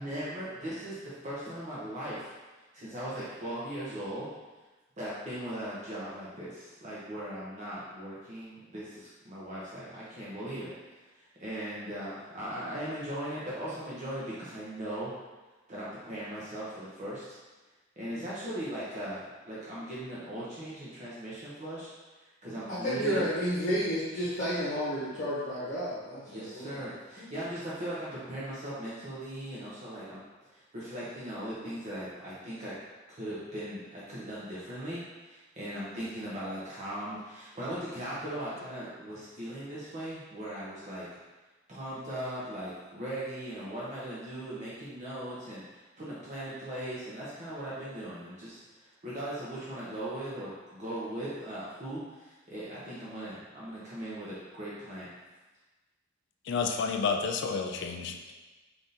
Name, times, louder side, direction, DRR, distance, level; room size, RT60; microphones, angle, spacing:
voice 1, 0.0-2.3 2.7-4.3 5.0-10.7 11.2-15.1 15.7-17.4 18.0-21.9 22.2-23.2 26.3-30.2 30.5-32.7 33.2-41.1 41.7-55.1, right 1 dB, 35° right, -8 dB, 0.7 m, -39 dB
voice 2, 22.7-26.8 27.2-27.3, equal, 40° left, -10 dB, 0.9 m, -31 dB
voice 3, 56.4-58.3, left 5 dB, 60° left, 5 dB, 0.4 m, -30 dB
3.5 x 2.6 x 3.9 m, 1.2 s
head